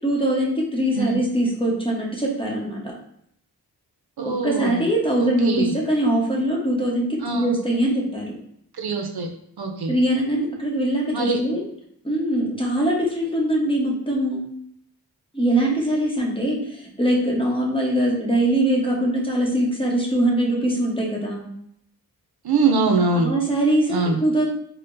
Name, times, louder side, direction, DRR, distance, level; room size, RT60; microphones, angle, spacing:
voice 1, 0.0-2.9 4.4-8.4 9.9-11.6 12.0-14.4 15.3-21.5 23.1-24.5, right 1 dB, 15° left, -3 dB, 1.0 m, -22 dB
voice 2, 4.2-4.8 5.2-5.7 7.2-7.5 8.8-9.3 9.6-9.9 11.1-11.4 22.4-23.3 23.9-24.2, right 4 dB, 65° right, 4 dB, 0.5 m, -23 dB
4.3 x 2.1 x 2.5 m, 0.71 s
cardioid pair, 45°, 41 cm